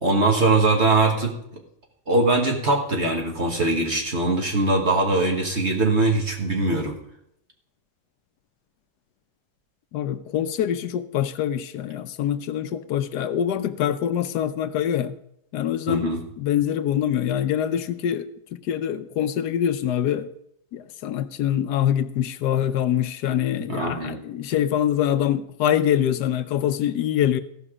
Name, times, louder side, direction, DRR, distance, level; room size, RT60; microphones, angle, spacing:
voice 1, 0.0-1.6 2.1-7.0 15.9-16.2 23.7-24.2, right 2 dB, 45° right, 1 dB, 1.7 m, -22 dB
voice 2, 9.9-15.1 15.5-18.3 18.7-20.3 20.7-27.4, left 10 dB, 85° left, 12 dB, 1.3 m, -24 dB
15.5 x 6.1 x 4.9 m, 0.75 s
omnidirectional pair, 1.7 m